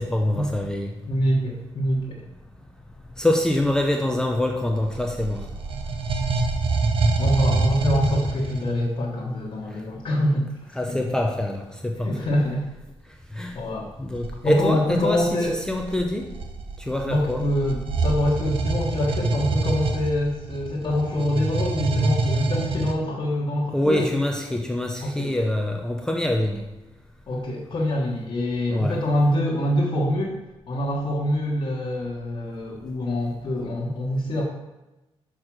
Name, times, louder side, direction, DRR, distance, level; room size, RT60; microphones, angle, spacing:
voice 1, 0.0-0.9 3.2-5.5 10.7-12.3 13.3-13.6 14.0-16.3 16.8-17.5 23.7-26.7 28.7-29.0, left 1 dB, 5° left, 1 dB, 0.6 m, -25 dB
voice 2, 1.1-2.2 7.2-10.5 12.0-12.6 13.5-13.9 14.4-15.6 17.1-24.1 25.0-25.3 27.3-30.4 30.7-34.4, left 1 dB, 50° left, -5 dB, 1.4 m, -25 dB
sound 1, 4.7-8.8 14.1-14.4 15.2-22.9, right 3 dB, 55° right, 0.8 m, -26 dB
6.3 x 4.7 x 6.0 m, 1.0 s
cardioid pair, 120°, 11 cm